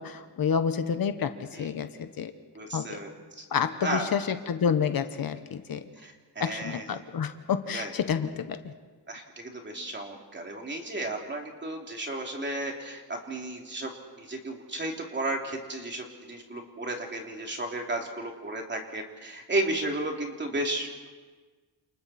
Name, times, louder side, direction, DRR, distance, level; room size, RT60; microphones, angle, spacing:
voice 1, 0.0-2.3 2.7-3.0 3.5-5.8 6.4-8.7, left 7 dB, 55° left, 8 dB, 1.2 m, -29 dB
voice 2, 2.5-3.4 3.8-4.1 6.0-7.0 7.7-7.9 9.1-13.9 14.2-21.1, right 2 dB, 25° right, 1 dB, 3.0 m, -33 dB
29.5 x 28.5 x 4.3 m, 1.4 s
wide cardioid pair, 160°, 41 cm